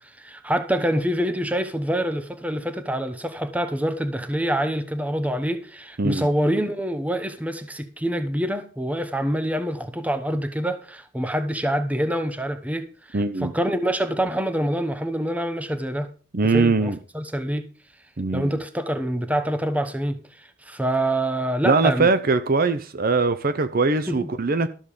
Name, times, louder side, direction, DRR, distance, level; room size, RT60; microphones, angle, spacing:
voice 1, 0.0-16.1 16.4-17.7 18.3-22.1 24.1-24.3, right 1 dB, 5° right, 1.0 m, -26 dB
voice 2, 13.1-13.5 16.3-17.0 18.2-18.5 21.6-24.7, right 3 dB, 45° right, 0.7 m, -21 dB
13.0 x 5.4 x 6.7 m
head